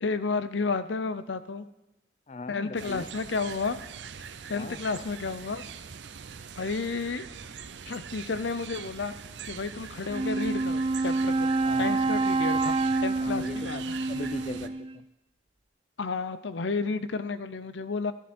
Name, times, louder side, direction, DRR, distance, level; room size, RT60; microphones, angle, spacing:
voice 1, 0.0-1.7 2.5-3.8 4.5-5.6 6.6-7.3 7.9-9.2 9.5-14.0 16.0-18.1, left 4 dB, 80° left, 13 dB, 0.7 m, -32 dB
voice 2, 2.3-3.1 4.5-4.8 11.6-12.0 13.1-15.0, left 2 dB, 35° left, 14 dB, 0.5 m, -40 dB
sound 1, 2.8-14.7, right 7 dB, 75° right, 0.6 m, -43 dB
Wind instrument woodwind instrument, 10.0-15.0, right 3 dB, 30° right, 0.5 m, -27 dB
13.0 x 11.0 x 4.4 m, 0.92 s
head